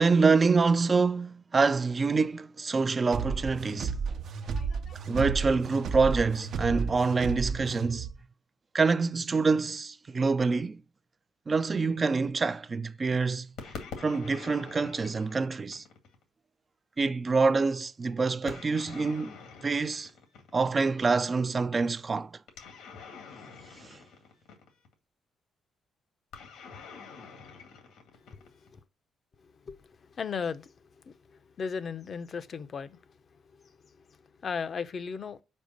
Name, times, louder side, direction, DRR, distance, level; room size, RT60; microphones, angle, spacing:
voice 1, 0.0-4.2 5.1-8.1 8.7-10.8 11.5-13.5 14.0-15.8 17.0-19.4 19.6-20.1 20.5-22.4 23.8-24.0, right 4 dB, 35° right, 0.4 m, -26 dB
sound 1, 3.1-8.1, right 5 dB, 65° right, 0.8 m, -33 dB
voice 2, 4.4-5.0 28.1-28.8 29.4-35.4, left 5 dB, 50° left, 0.7 m, -38 dB
sound 2, 13.6-16.2 18.5-20.8 22.5-24.9 26.3-28.8, left 5 dB, 90° left, 2.0 m, -46 dB
5.3 x 5.0 x 6.3 m
cardioid pair, 90°, 0 cm